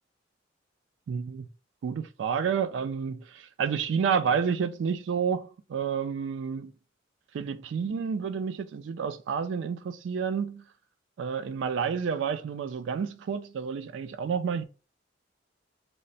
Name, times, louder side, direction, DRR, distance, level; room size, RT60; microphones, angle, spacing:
voice 1, 1.1-1.5 1.8-6.7 7.3-10.6 11.2-14.6, right 6 dB, 70° right, 0.3 m, -30 dB
3.2 x 2.1 x 3.9 m
head